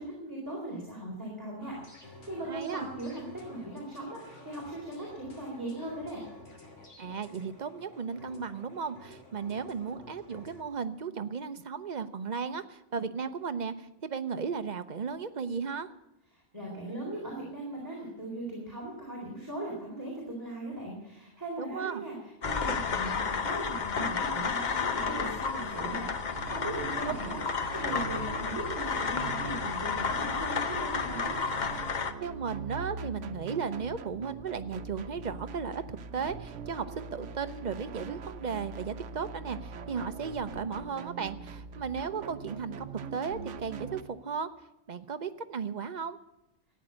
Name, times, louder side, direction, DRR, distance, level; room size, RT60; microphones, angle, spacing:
voice 1, 0.0-6.2 16.3-27.4 27.7-31.4, right 1 dB, 15° right, -4 dB, 3.8 m, -39 dB
sound 1, 1.6-10.6, left 1 dB, 75° left, 3.3 m, -51 dB
voice 2, 2.5-2.9 7.0-15.9 21.6-22.0 32.2-44.5 44.9-46.2, right 6 dB, 45° right, 11 dB, 0.7 m, -35 dB
sound 2, 22.4-32.1, left 5 dB, 45° left, 0.9 m, -32 dB
sound 3, 26.3-44.0, right 5 dB, 80° right, 1.1 m, -42 dB
14.0 x 9.6 x 8.8 m, 0.89 s
omnidirectional pair, 1.2 m